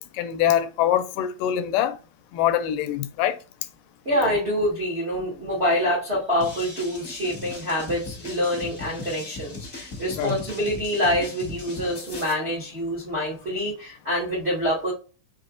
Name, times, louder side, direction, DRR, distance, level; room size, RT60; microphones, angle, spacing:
voice 1, 0.0-2.0 2.3-3.4 10.2-10.4, left 11 dB, 85° left, 2.2 m, -24 dB
voice 2, 4.0-14.9, equal, 55° right, 0.7 m, -26 dB
sound 1, 6.4-12.3, left 3 dB, 45° left, 1.0 m, -38 dB
5.5 x 3.9 x 2.5 m
omnidirectional pair, 3.9 m